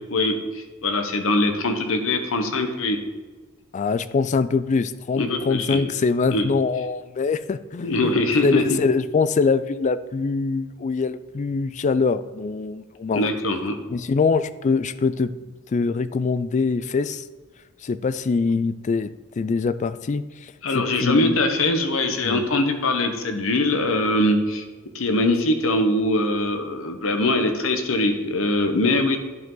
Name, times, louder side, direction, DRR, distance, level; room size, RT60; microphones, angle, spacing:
voice 1, 0.1-3.0 5.2-5.8 6.3-6.5 7.8-8.6 13.1-13.8 20.6-24.6 24.9-29.2, left 2 dB, 65° left, 6 dB, 1.0 m, -22 dB
voice 2, 3.7-8.1 8.4-13.3 13.9-15.3 15.7-17.2 17.8-19.1 19.4-21.4 22.2-22.4, left 4 dB, 35° left, 14 dB, 0.3 m, -23 dB
10.5 x 4.9 x 3.9 m, 1.3 s
head